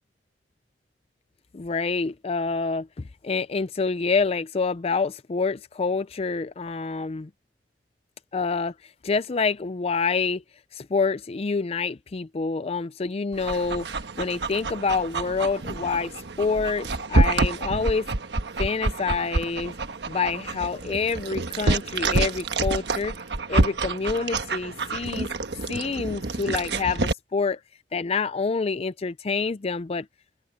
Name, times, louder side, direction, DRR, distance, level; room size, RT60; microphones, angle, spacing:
voice 1, 1.5-2.9 3.2-7.3 8.3-8.7 9.0-10.4 10.7-18.1 18.6-19.7 20.1-23.1 23.5-25.3 25.7-27.6 27.9-30.1, left 4 dB, 35° left, 0.4 m, -27 dB
Dog, 13.3-27.1, right 2 dB, 75° right, 1.3 m, -27 dB
open air
head